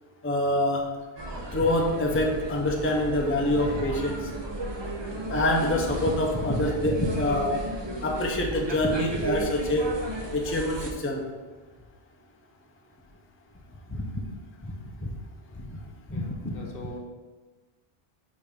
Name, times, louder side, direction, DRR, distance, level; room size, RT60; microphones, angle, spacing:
voice 1, 0.2-1.0 1.5-4.3 5.3-7.7 8.0-10.0 10.3-11.2 13.9-14.0 14.6-14.7 15.5-15.7 16.1-16.5, left 1 dB, 15° left, 1 dB, 0.6 m, -26 dB
sound 1, 1.2-10.9, right 1 dB, 30° right, 0.8 m, -34 dB
voice 2, 16.1-17.0, left 1 dB, 65° left, 1 dB, 1.1 m, -42 dB
5.2 x 4.4 x 5.2 m, 1.3 s
omnidirectional pair, 1.0 m